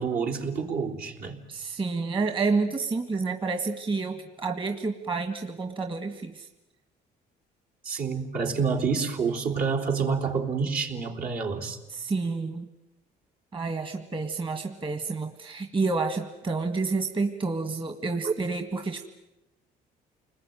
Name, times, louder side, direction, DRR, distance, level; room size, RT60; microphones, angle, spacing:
voice 1, 0.0-1.4 7.8-11.8 18.2-18.3, right 5 dB, 65° right, 2 dB, 3.8 m, -28 dB
voice 2, 1.5-6.5 11.9-12.7 13.5-19.1, right 4 dB, 30° right, 6 dB, 1.8 m, -29 dB
29.5 x 21.0 x 9.3 m, 0.95 s
cardioid pair, 110°, 17 cm